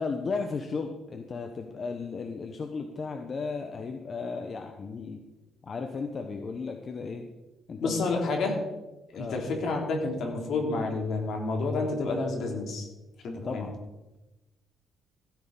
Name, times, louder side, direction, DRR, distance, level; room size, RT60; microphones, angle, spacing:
voice 1, 0.0-5.2 5.6-7.2 7.7-8.2 9.1-9.4 13.4-13.7, left 4 dB, 45° left, 5 dB, 1.1 m, -35 dB
voice 2, 7.8-8.5 9.1-12.9 13.2-13.6, left 3 dB, 70° left, 2 dB, 3.2 m, -29 dB
16.0 x 9.6 x 4.1 m, 1.0 s
cardioid pair, 90°, 0 cm